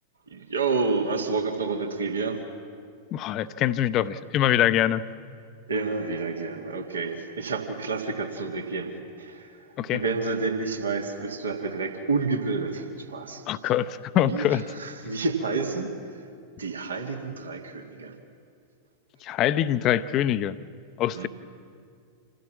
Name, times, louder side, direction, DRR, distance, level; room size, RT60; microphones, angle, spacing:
voice 1, 0.3-2.4 5.7-9.7 9.9-13.4 14.3-14.5 14.7-15.9 16.6-18.1 21.2-21.3, right 4 dB, 70° right, 3 dB, 1.9 m, -29 dB
voice 2, 3.1-5.0 9.8-10.0 13.5-14.6 19.2-20.6 21.0-21.3, left 11 dB, 35° left, 13 dB, 0.7 m, -24 dB
27.0 x 15.5 x 7.4 m, 2.3 s
figure-of-eight pair, 90°, 0 cm